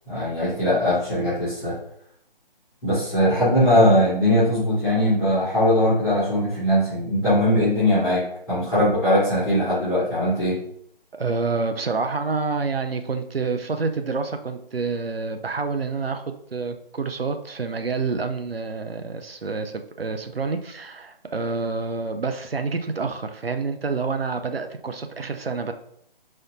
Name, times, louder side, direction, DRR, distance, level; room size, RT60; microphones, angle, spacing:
voice 1, 0.0-1.7 2.8-10.6, left 1 dB, ahead, -25 dB, 0.5 m, -20 dB
voice 2, 11.1-25.7, right 4 dB, 80° right, 7 dB, 0.6 m, -28 dB
4.2 x 2.5 x 4.0 m, 0.70 s
figure-of-eight pair, 150°, 29 cm